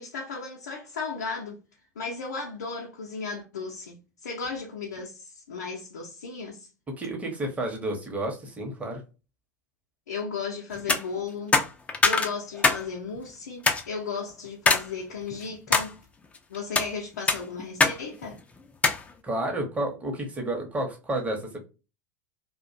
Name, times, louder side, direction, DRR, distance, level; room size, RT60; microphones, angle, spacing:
voice 1, 0.0-1.6 2.0-6.7 10.1-11.6 12.0-15.9 16.5-18.4, left 5 dB, 70° left, 0.5 m, -35 dB
voice 2, 6.9-9.0 19.2-21.7, right 1 dB, 15° right, 0.8 m, -31 dB
sound 1, 10.8-11.0 11.5-12.8 13.2-13.3 13.7-13.8 14.7-14.9 15.3-15.9 16.5-16.9 17.3-18.0 18.2-18.3 18.8-19.0, left 4 dB, 15° left, 0.4 m, -22 dB
2.4 x 2.1 x 2.4 m
figure-of-eight pair, 80°, 9 cm